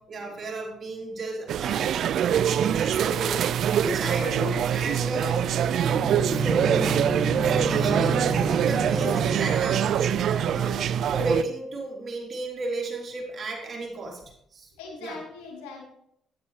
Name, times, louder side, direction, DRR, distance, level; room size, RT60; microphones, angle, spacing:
voice 1, 0.0-5.4 6.3-6.9 7.5-14.7 15.0-15.2, right 2 dB, 40° right, -2 dB, 4.0 m, -34 dB
sound 1, 1.5-11.4, right 9 dB, 65° right, 0.4 m, -24 dB
voice 2, 4.1-4.6 14.8-15.8, left 4 dB, 80° left, -2 dB, 3.4 m, -41 dB
Bowed string instrument, 5.8-10.8, equal, 10° right, 1.0 m, -31 dB
10.5 x 9.7 x 3.4 m, 0.74 s
hypercardioid pair, 55°, 0 cm